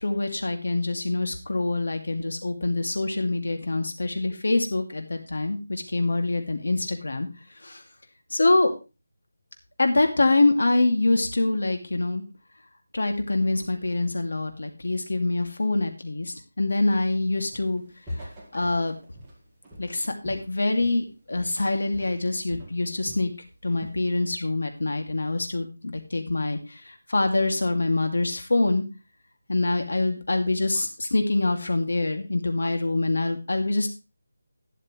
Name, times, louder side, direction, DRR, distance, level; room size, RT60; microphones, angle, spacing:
voice 1, 0.0-7.3 7.6-7.8 8.3-8.7 9.8-12.2 12.9-17.8 18.5-18.9 19.8-23.3 23.6-26.6 26.9-28.8 29.5-33.9, left 2 dB, 70° left, 5 dB, 2.5 m, -25 dB
Walk footsteps, 17.5-17.8 18.1-21.1 21.3-21.7 21.9-23.3 23.7-24.0, equal, 5° right, 2.0 m, -42 dB
12.5 x 10.5 x 3.3 m, 0.30 s
figure-of-eight pair, 175°, 0 cm